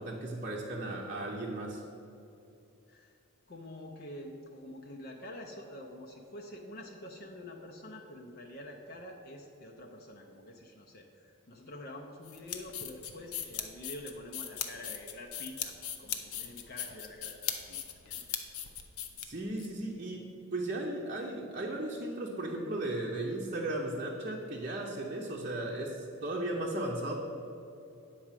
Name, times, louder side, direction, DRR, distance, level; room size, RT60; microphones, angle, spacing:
voice 1, 0.0-1.8 19.2-27.1, right 1 dB, 35° right, -3 dB, 0.8 m, -36 dB
voice 2, 2.9-3.2 3.5-18.2, left 1 dB, 45° left, 2 dB, 0.6 m, -47 dB
sound 1, 12.2-19.7, left 9 dB, 80° left, 0.8 m, -39 dB
9.2 x 4.8 x 7.4 m, 2.8 s
head